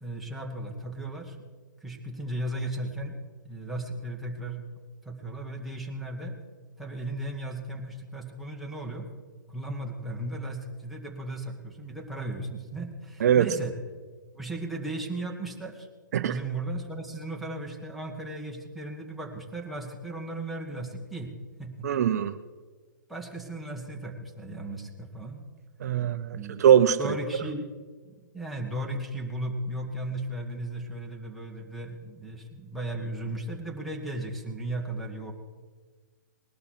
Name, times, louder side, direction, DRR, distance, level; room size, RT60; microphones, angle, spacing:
voice 1, 0.0-1.4 1.8-3.1 3.5-4.6 5.1-6.4 6.8-9.1 9.5-13.7 14.3-15.9 16.2-21.3 21.6-21.9 23.1-25.4 26.3-26.6 27.0-27.7 28.0-35.3, right 1 dB, ahead, -1 dB, 1.8 m, -36 dB
voice 2, 21.8-22.3 25.8-27.0, right 9 dB, 55° right, 11 dB, 0.7 m, -21 dB
19.5 x 12.0 x 4.5 m, 1.5 s
figure-of-eight pair, 125°, 10 cm